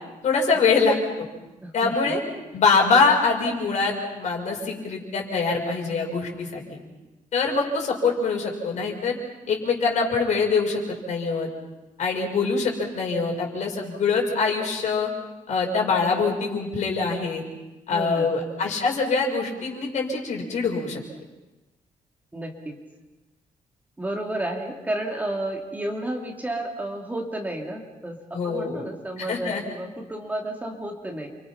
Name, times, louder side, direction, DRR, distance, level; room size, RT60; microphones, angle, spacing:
voice 1, 0.2-1.3 1.7-2.2 2.5-6.6 7.3-9.2 9.5-11.5 12.0-15.1 15.5-17.4 17.9-21.0 28.3-28.8 29.2-29.6, left 4 dB, 60° left, 1 dB, 5.8 m, -24 dB
voice 2, 1.6-2.1 17.9-18.3 22.3-22.8 24.0-31.3, right 1 dB, 10° right, 1 dB, 2.6 m, -32 dB
29.5 x 25.5 x 5.9 m, 1.1 s
wide cardioid pair, 165°, 14 cm